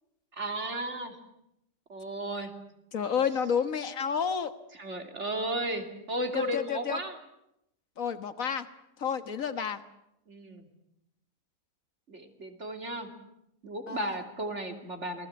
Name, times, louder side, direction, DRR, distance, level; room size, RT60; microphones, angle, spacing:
voice 1, 0.4-1.2 1.9-2.5 4.7-7.2 10.3-10.7 12.1-13.1 13.6-15.3, right 1 dB, 45° right, 5 dB, 3.2 m, -34 dB
voice 2, 2.9-4.5 6.3-7.0 8.0-8.7 9.0-9.8 13.9-14.1, left 7 dB, 55° left, 10 dB, 1.8 m, -30 dB
27.5 x 20.0 x 8.8 m, 0.83 s
omnidirectional pair, 1.7 m